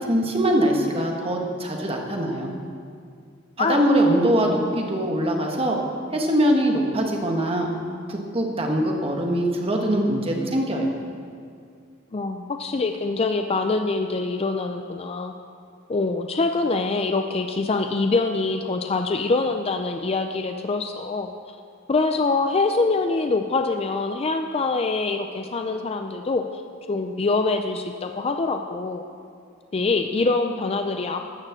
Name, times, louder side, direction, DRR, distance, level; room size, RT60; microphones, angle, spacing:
voice 1, 0.0-2.5 3.6-5.8 6.1-7.7 8.1-10.9, right 1 dB, 30° right, 1 dB, 1.4 m, -22 dB
voice 2, 12.1-15.3 15.9-21.3 21.9-26.5 26.9-29.0 29.7-31.3, left 3 dB, 30° left, 6 dB, 0.4 m, -24 dB
12.5 x 6.6 x 7.5 m, 2.2 s
head